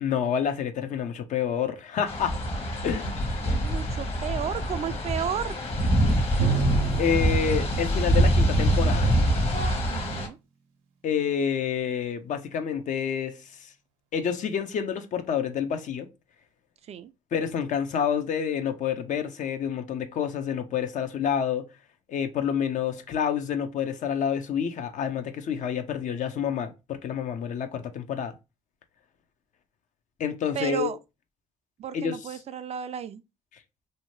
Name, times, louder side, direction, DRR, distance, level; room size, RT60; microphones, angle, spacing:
voice 1, 0.0-2.4 2.8-3.2 7.0-9.2 11.0-13.7 14.1-16.1 17.3-21.6 22.1-28.4 30.2-30.9 31.9-32.2, left 8 dB, 55° left, 0.5 m, -28 dB
sound 1, 2.1-10.3, equal, 40° left, 1.0 m, -25 dB
voice 2, 3.5-5.6 9.9-10.4 16.9-17.1 30.5-31.0 31.8-33.2, right 8 dB, 45° right, 0.4 m, -33 dB
Drum, 6.4-9.9, right 5 dB, 90° right, 0.6 m, -31 dB
2.7 x 2.1 x 3.1 m
supercardioid pair, 65°, 15 cm